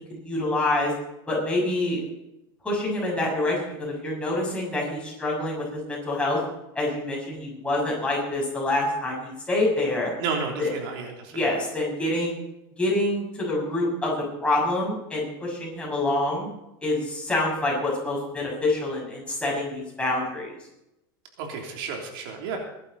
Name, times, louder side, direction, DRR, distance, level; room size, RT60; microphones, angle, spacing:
voice 1, 0.2-0.9 1.3-2.0 2.6-6.4 6.7-10.1 10.6-10.7 11.3-12.4 12.8-14.1 14.4-16.5 16.8-20.6, left 2 dB, 10° left, -4 dB, 6.6 m, -26 dB
voice 2, 10.2-11.5 21.4-22.6, right 5 dB, 70° right, 1 dB, 3.3 m, -32 dB
20.5 x 11.5 x 4.2 m, 0.88 s
supercardioid pair, 140°, 12 cm